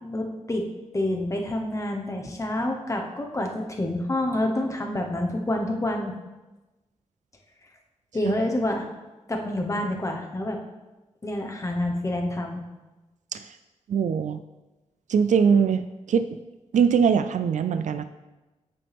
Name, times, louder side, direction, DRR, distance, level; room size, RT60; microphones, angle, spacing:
voice 1, 0.0-0.7 0.9-6.1 8.1-8.8 9.3-10.6 11.2-12.6, left 1 dB, 25° left, 2 dB, 1.1 m, -28 dB
voice 2, 13.9-14.4 15.1-15.8 16.1-16.3 16.7-18.0, right 6 dB, 75° right, 11 dB, 0.4 m, -21 dB
8.5 x 6.8 x 3.5 m, 1.1 s
wide cardioid pair, 115°, 13 cm